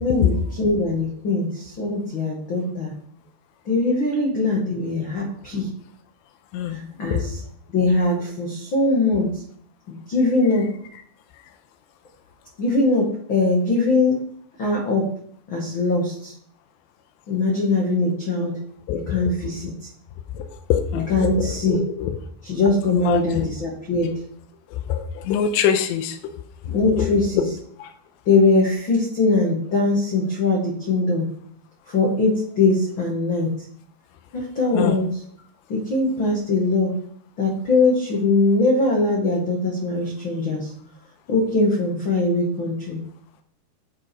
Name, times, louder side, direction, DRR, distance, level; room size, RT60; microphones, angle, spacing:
voice 1, 0.0-2.9 3.6-5.7 6.7-7.4 7.7-9.3 9.9-10.7 12.6-14.2 14.6-15.1 15.5-16.3 17.3-18.5 19.1-19.9 21.1-21.8 22.4-24.1 26.6-27.5 28.2-31.3 31.9-33.5 34.3-35.2 35.7-36.9 37.4-40.7 41.3-43.0, left 3 dB, 45° left, -2 dB, 1.6 m, -21 dB
voice 2, 18.9-19.3 20.7-21.1 21.7-22.1 22.9-23.5 24.9-26.2 26.9-27.1 27.8-27.9 34.7-35.0, left 9 dB, 85° left, 6 dB, 2.9 m, -24 dB
10.5 x 6.5 x 4.6 m, 0.63 s
omnidirectional pair, 5.0 m